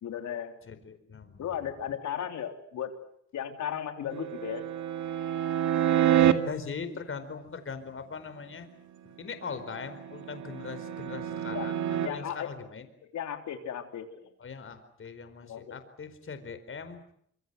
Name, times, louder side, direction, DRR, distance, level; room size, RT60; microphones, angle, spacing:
voice 1, 0.0-0.5 1.4-2.9 3.3-4.6 11.5-11.7 12.0-12.5 13.1-14.1 15.5-15.8, left 9 dB, 70° left, 6 dB, 3.6 m, -35 dB
voice 2, 0.7-1.7 6.4-8.7 9.2-12.9 14.4-17.0, left 5 dB, 45° left, 10 dB, 4.7 m, -40 dB
sound 1, 4.1-6.3 9.7-12.1, right 11 dB, 70° right, 2.3 m, -27 dB
25.5 x 25.0 x 8.1 m, 0.69 s
cardioid pair, 90°, 30 cm